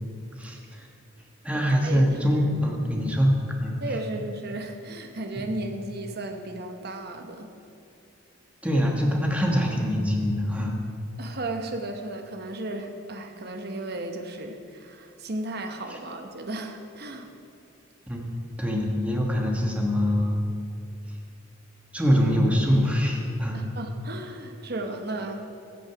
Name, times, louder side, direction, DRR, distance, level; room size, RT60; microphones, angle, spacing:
voice 1, 0.4-0.9 1.4-3.3 3.6-3.8 5.4-5.5 8.6-10.8 15.9-16.0 18.1-18.2 18.6-20.4 21.9-23.7, equal, 5° right, 0 dB, 1.3 m, -24 dB
voice 2, 1.5-2.5 3.8-7.5 11.2-17.3 23.5-25.6, right 2 dB, 50° right, 5 dB, 1.0 m, -35 dB
15.5 x 6.4 x 5.8 m, 2.5 s
head